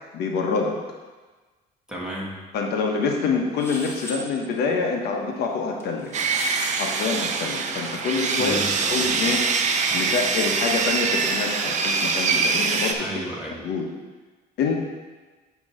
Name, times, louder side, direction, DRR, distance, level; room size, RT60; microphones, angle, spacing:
voice 1, 0.1-0.8 2.5-6.1 6.7-8.6 8.9-9.6 9.9-13.1 13.6-13.9 14.6-14.7, left 4 dB, 75° left, 1 dB, 1.1 m, -26 dB
voice 2, 1.9-2.4 8.4-9.3 9.9-10.1 12.9-13.7, equal, 5° right, -4 dB, 1.7 m, -33 dB
sound 1, 3.6-4.2 5.8-6.7, equal, 15° left, 1.4 m, -37 dB
Sawing, 6.1-12.9, right 5 dB, 45° right, 0.7 m, -24 dB
8.5 x 3.1 x 6.4 m, 1.3 s
cardioid pair, 110°, 17 cm